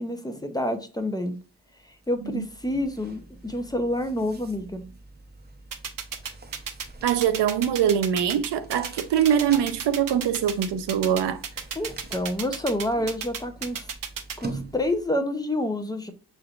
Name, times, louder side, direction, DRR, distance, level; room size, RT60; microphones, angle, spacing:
voice 1, 0.0-1.3 2.1-4.8 11.8-13.9 14.4-16.1, left 1 dB, 10° left, 0.6 m, -28 dB
sound 1, 1.3-1.4 1.8-15.2, right 2 dB, 25° right, 0.7 m, -45 dB
sound 2, 5.7-14.3, right 7 dB, 55° right, 0.8 m, -33 dB
voice 2, 7.0-11.4, right 9 dB, 85° right, 0.6 m, -23 dB
6.2 x 3.2 x 2.4 m
wide cardioid pair, 115°, 40 cm